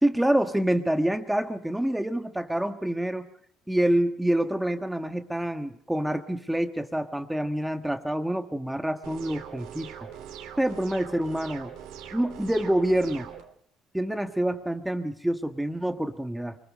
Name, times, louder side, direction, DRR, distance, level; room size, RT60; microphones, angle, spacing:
voice 1, 0.0-3.3 3.7-10.1 10.6-11.7 12.1-13.3 13.9-16.6, right 1 dB, 5° right, 7 dB, 1.4 m, -27 dB
sound 1, 9.0-13.4, right 9 dB, 90° right, 3.1 m, -42 dB
24.5 x 21.5 x 5.3 m, 0.62 s
cardioid pair, 110°, 0 cm